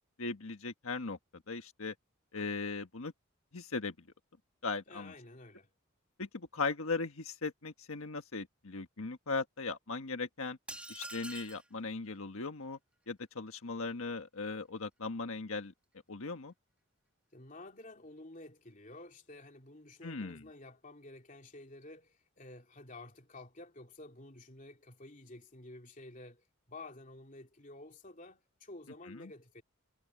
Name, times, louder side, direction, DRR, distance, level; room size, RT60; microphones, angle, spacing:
voice 1, 0.2-1.2 1.5-1.9 2.3-3.1 3.5-3.9 4.6-5.1 6.2-10.6 10.9-12.8 13.1-15.7 16.1-16.5 20.0-20.4 29.1-29.2, left 4 dB, 80° left, 1.5 m, -38 dB
voice 2, 4.9-5.7 17.3-29.6, left 2 dB, 35° left, 3.1 m, -51 dB
sound 1, 10.7-11.7, right 1 dB, 5° right, 3.0 m, -45 dB
head